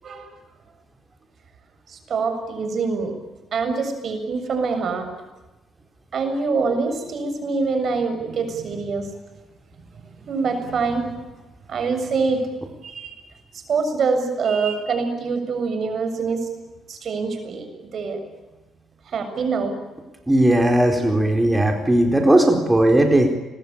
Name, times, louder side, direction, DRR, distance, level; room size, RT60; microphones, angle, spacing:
voice 1, 0.0-0.3 1.9-3.1 3.5-5.1 6.1-9.1 10.3-11.1 11.7-12.5 12.8-13.1 13.7-16.5 16.9-17.7 17.9-18.2 19.1-19.7, right 4 dB, 55° right, 7 dB, 7.0 m, -24 dB
voice 2, 20.3-23.4, right 1 dB, 10° right, 3 dB, 4.3 m, -17 dB
30.0 x 21.5 x 8.8 m, 1.1 s
cardioid pair, 90°, 0 cm